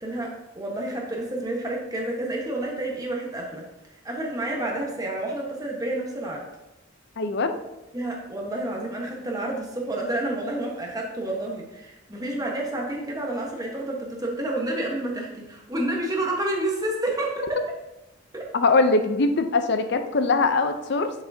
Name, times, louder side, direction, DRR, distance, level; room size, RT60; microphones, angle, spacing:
voice 1, 0.0-3.7 4.0-6.5 7.9-17.7 18.3-18.5, right 1 dB, 20° right, -1 dB, 1.1 m, -29 dB
voice 2, 7.2-7.6 18.5-21.1, left 3 dB, 55° left, 8 dB, 0.6 m, -22 dB
7.3 x 6.4 x 2.7 m, 0.97 s
head